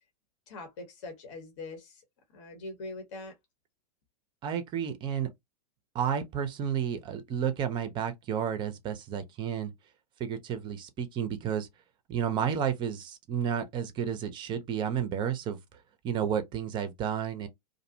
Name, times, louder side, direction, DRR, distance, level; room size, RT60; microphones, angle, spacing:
voice 1, 0.5-2.0 2.3-3.4, left 2 dB, 50° left, 0.8 m, -42 dB
voice 2, 4.4-5.3 5.9-9.7 10.2-11.7 12.1-15.6 16.0-17.5, right 8 dB, 25° right, 0.5 m, -31 dB
2.5 x 2.0 x 2.7 m
figure-of-eight pair, 95°, 21 cm